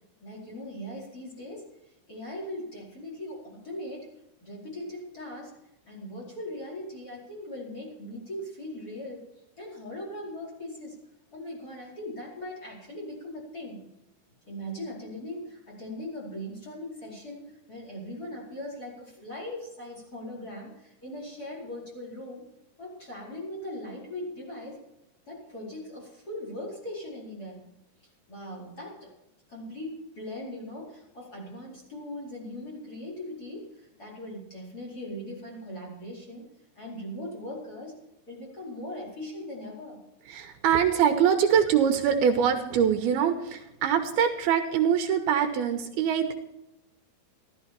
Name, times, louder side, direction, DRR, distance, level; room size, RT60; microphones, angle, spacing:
voice 1, 0.2-1.7 2.1-4.1 4.4-5.5 5.9-9.3 9.6-11.0 11.3-13.9 14.5-22.5 22.8-24.8 25.3-27.6 28.3-29.1 29.5-36.5 36.7-38.0 38.3-40.0, left 1 dB, 20° left, -3 dB, 4.8 m, -39 dB
voice 2, 40.3-46.3, right 8 dB, 75° right, 6 dB, 2.8 m, -24 dB
14.0 x 13.5 x 4.5 m, 0.87 s
omnidirectional pair, 4.7 m